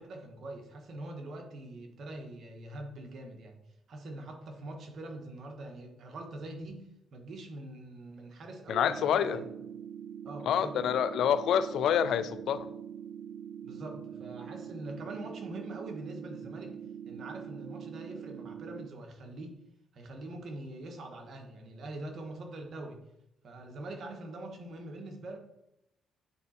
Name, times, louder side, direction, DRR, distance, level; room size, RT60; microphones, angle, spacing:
voice 1, 0.0-3.6 3.9-9.4 10.2-10.8 13.6-19.5 19.9-23.0 23.4-25.4, right 2 dB, 60° right, 3 dB, 1.4 m, -43 dB
voice 2, 8.7-9.4 10.5-12.7, left 8 dB, 75° left, 13 dB, 0.4 m, -27 dB
sound 1, 8.9-18.9, right 9 dB, 80° right, 0.4 m, -44 dB
8.6 x 3.8 x 4.3 m, 0.82 s
cardioid pair, 90°, 0 cm